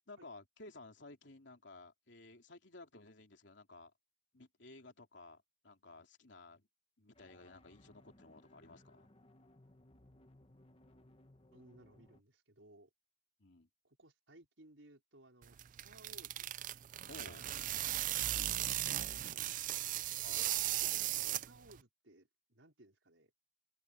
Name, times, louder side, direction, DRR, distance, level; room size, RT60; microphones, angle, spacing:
voice 1, 0.1-3.9 4.3-6.7 7.0-9.1 13.4-13.7 17.1-17.5 20.2-20.5, left 2 dB, 70° left, 3.2 m, -55 dB
sound 1, 7.1-12.2, left 1 dB, 30° left, 1.5 m, -64 dB
voice 2, 11.5-12.9 13.8-16.5 18.0-20.1 20.8-21.2 21.4-23.4, right 1 dB, 90° right, 4.8 m, -62 dB
sound 2, 15.4-21.8, right 14 dB, 45° right, 0.4 m, -37 dB
open air
head